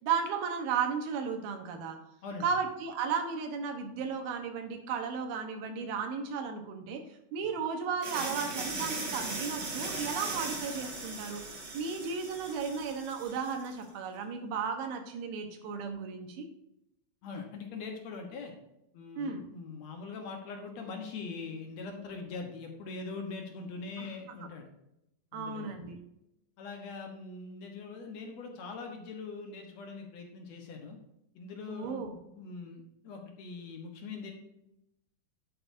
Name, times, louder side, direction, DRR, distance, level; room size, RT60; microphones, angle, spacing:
voice 1, 0.0-2.0 2.4-7.0 7.3-11.4 11.7-16.5 19.2-19.4 24.0-24.1 24.4-24.5 25.3-26.0 31.7-32.2, right 6 dB, 80° right, 5 dB, 3.0 m, -34 dB
sound 1, 8.0-13.7, right 3 dB, 40° right, 1.7 m, -38 dB
voice 2, 17.2-18.5 18.9-24.7 25.3-25.8 26.6-31.0 31.4-32.1 32.3-34.3, left 4 dB, 65° left, 3 dB, 1.9 m, -42 dB
10.5 x 8.5 x 2.7 m, 0.83 s
omnidirectional pair, 4.4 m